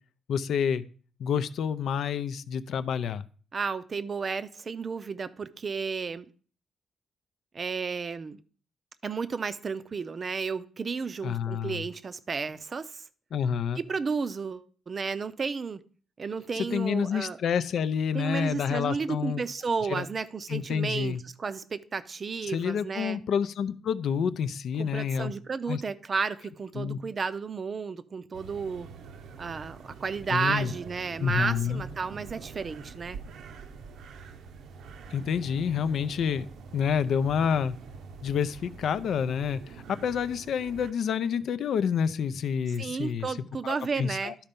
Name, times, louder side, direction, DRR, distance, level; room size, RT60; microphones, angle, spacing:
voice 1, 0.3-0.8 1.2-3.2 11.2-11.8 13.3-13.8 16.5-19.4 19.9-20.1 20.5-21.2 22.5-25.3 25.7-25.8 26.8-27.0 30.3-30.7 31.2-31.8 35.1-36.5 36.7-37.8 38.2-43.4 44.0-44.3, left 7 dB, 65° left, 0.5 m, -28 dB
voice 2, 3.5-6.3 7.5-8.4 9.0-13.0 13.8-15.8 16.2-17.4 18.1-23.2 24.8-28.9 29.4-33.2 42.8-44.4, right 5 dB, 35° right, 0.5 m, -32 dB
sound 1, 28.3-40.9, right 5 dB, 75° right, 0.7 m, -45 dB
12.0 x 4.4 x 5.3 m
cardioid pair, 130°, 0 cm